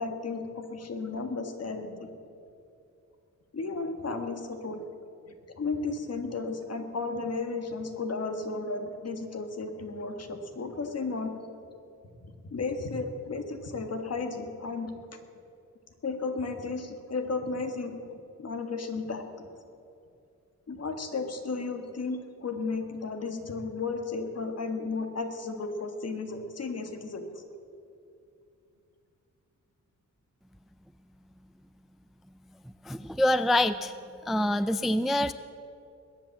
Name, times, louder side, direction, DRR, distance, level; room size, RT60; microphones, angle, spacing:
voice 1, 0.0-2.1 3.5-4.8 5.3-11.4 12.2-15.2 16.0-18.0 18.4-19.5 20.7-27.4, left 3 dB, 50° left, 6 dB, 1.7 m, -34 dB
voice 2, 32.9-33.9 34.3-35.3, left 1 dB, ahead, 13 dB, 0.3 m, -25 dB
21.5 x 8.8 x 7.3 m, 2.6 s
wide cardioid pair, 110°, 31 cm